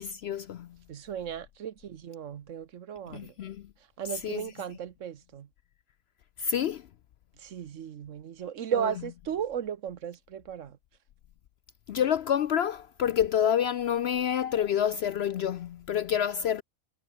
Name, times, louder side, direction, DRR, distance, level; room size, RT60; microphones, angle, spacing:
voice 1, 0.0-0.8 3.1-3.7 4.2-4.4 6.4-6.9 8.8-8.9 11.9-16.6, left 9 dB, 65° left, 0.7 m, -28 dB
voice 2, 0.9-3.3 4.0-5.5 7.4-10.8, right 9 dB, 65° right, 1.2 m, -35 dB
omnidirectional pair, 1.4 m